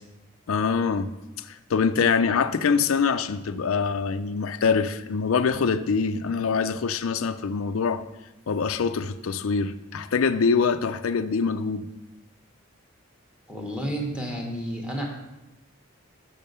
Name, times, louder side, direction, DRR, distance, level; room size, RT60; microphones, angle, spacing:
voice 1, 0.5-1.1 1.5-8.0 8.5-11.9, left 5 dB, 85° left, 0.5 m, -24 dB
voice 2, 13.5-15.1, right 1 dB, 5° right, 1.1 m, -31 dB
6.5 x 5.4 x 6.6 m
head